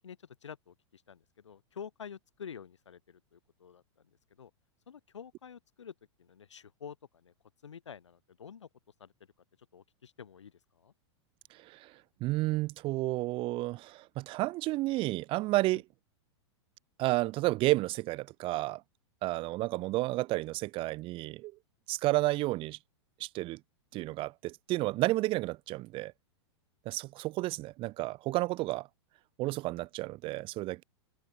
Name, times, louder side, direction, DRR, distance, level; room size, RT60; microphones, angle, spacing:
voice 1, 0.0-4.5 4.9-7.3 7.6-8.7 9.0-9.3 9.6-10.9 15.7-15.8, left 7 dB, 85° left, 6.4 m, -49 dB
voice 2, 11.5-11.9 12.2-15.8 17.0-18.8 19.2-21.5 21.9-22.8 23.2-23.6 23.9-26.1 26.9-28.9 29.4-30.8, right 19 dB, 35° right, 0.7 m, -31 dB
hypercardioid pair, 115°, 15 cm